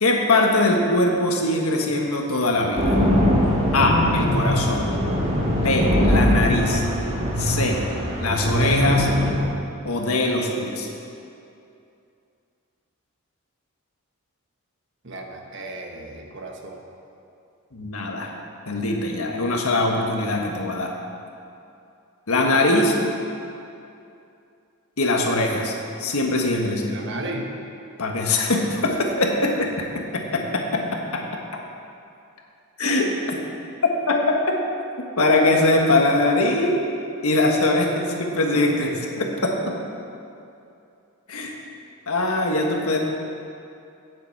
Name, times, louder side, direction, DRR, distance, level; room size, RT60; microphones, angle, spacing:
voice 1, 0.0-3.0 3.7-4.9 5.5-6.8 7.4-7.8 8.2-9.1 9.8-10.9 17.7-18.3 18.7-20.9 22.3-22.9 25.0-27.0 28.0-31.2 32.8-33.1 34.1-34.4 35.2-36.8 37.2-39.8 41.3-41.5 42.1-43.0, left 2 dB, 80° left, 1 dB, 1.5 m, -22 dB
sound 1, 2.8-9.4, equal, 25° right, 1.7 m, -21 dB
voice 2, 15.0-16.8 26.9-27.5 28.8-29.0, right 2 dB, 50° right, 2 dB, 1.2 m, -35 dB
9.0 x 7.9 x 7.7 m, 2.6 s
head